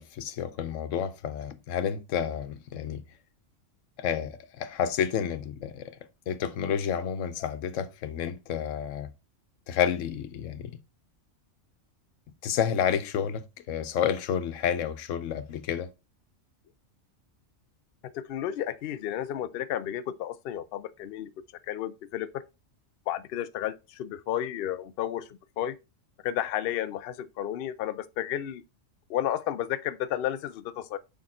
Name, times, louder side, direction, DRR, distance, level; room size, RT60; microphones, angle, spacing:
voice 1, 0.0-3.0 4.0-5.9 6.3-9.1 9.7-10.8 12.4-15.9, left 8 dB, 90° left, 1.0 m, -30 dB
voice 2, 18.1-21.3 21.7-22.4 23.1-25.8 26.2-28.6 29.1-31.0, left 11 dB, 60° left, 0.6 m, -32 dB
6.5 x 3.5 x 4.2 m
omnidirectional pair, 1.3 m